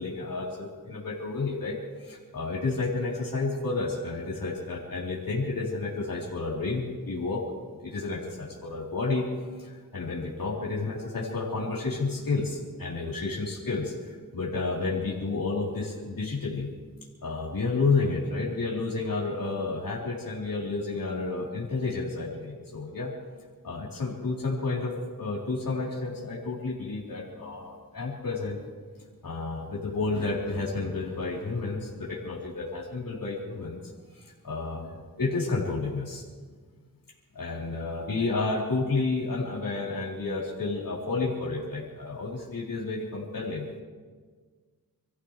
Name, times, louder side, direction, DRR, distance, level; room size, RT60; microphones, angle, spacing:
voice 1, 0.0-7.4 7.8-16.7 17.2-23.1 23.6-28.6 29.2-33.8 34.1-36.2 37.3-43.7, left 3 dB, 70° left, -5 dB, 3.7 m, -31 dB
28.5 x 14.5 x 3.3 m, 1.5 s
cardioid pair, 65°, 35 cm